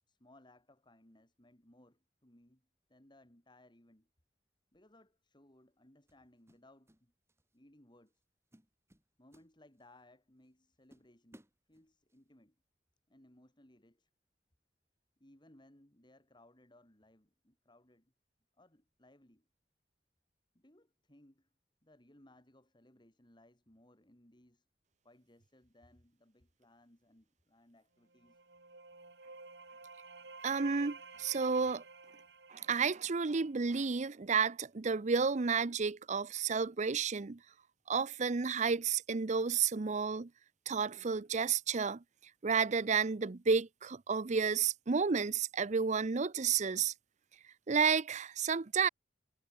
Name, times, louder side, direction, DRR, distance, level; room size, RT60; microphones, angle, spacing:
voice 1, 0.1-2.6 2.9-4.1 4.7-7.1 7.5-8.1 9.2-11.4 11.7-12.5 13.1-14.1 15.2-18.1 18.6-19.5 20.5-21.5 21.8-24.6 25.0-28.4, left 1 dB, 25° left, 3.3 m, -64 dB
sound 1, 4.7-5.0 6.1-7.0 7.3-7.6 8.1-8.2 8.5-10.0 10.4-10.5 10.9-12.2, equal, 15° right, 3.4 m, -63 dB
sound 2, 28.1-33.8, right 4 dB, 85° right, 4.1 m, -53 dB
voice 2, 30.4-31.8 32.5-37.4 37.9-40.3 40.7-42.0 42.4-46.9 47.7-48.9, right 5 dB, 45° right, 0.6 m, -31 dB
head